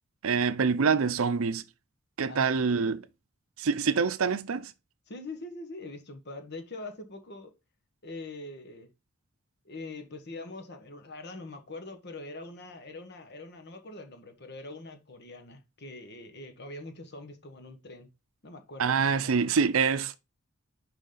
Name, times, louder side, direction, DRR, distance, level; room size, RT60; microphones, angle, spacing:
voice 1, 0.2-1.6 2.2-3.0 3.6-4.7 18.8-20.2, right 5 dB, 75° right, 0.6 m, -26 dB
voice 2, 2.2-3.0 5.1-7.5 8.0-8.9 9.6-18.1 18.4-19.3, left 2 dB, 50° left, 1.3 m, -43 dB
6.6 x 5.1 x 3.9 m
head